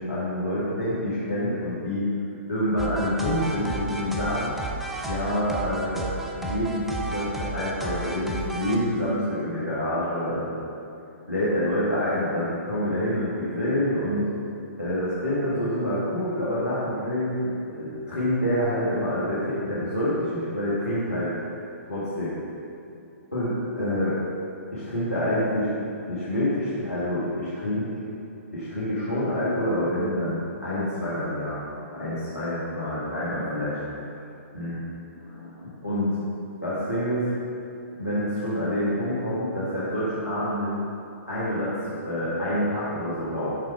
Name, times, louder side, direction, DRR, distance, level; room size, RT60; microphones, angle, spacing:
voice 1, 0.0-2.1 2.5-4.6 5.0-6.1 6.4-10.6 11.3-14.3 14.8-21.3 21.9-22.4 23.3-24.2 24.7-25.7 26.1-27.9 28.5-34.1 34.5-34.8 35.2-36.1 36.6-37.3 38.0-40.8 41.3-43.6, left 1 dB, 85° left, -11 dB, 1.4 m, -27 dB
sound 1, 2.8-8.8, right 2 dB, 5° right, 0.4 m, -32 dB
6.5 x 3.5 x 4.7 m, 2.7 s
figure-of-eight pair, 120°, 8 cm